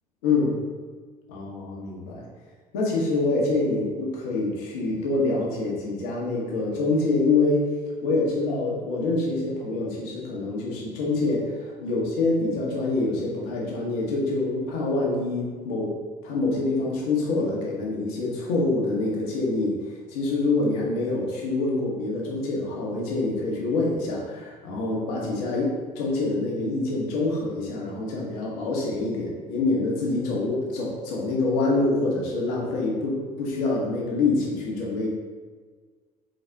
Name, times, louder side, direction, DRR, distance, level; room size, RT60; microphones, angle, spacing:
voice 1, 0.2-0.6 1.3-2.3 2.7-7.7 8.0-15.9 16.2-25.7 25.9-35.1, left 3 dB, 65° left, -3 dB, 1.1 m, -26 dB
4.1 x 3.9 x 3.4 m, 1.5 s
figure-of-eight pair, 60°, 20 cm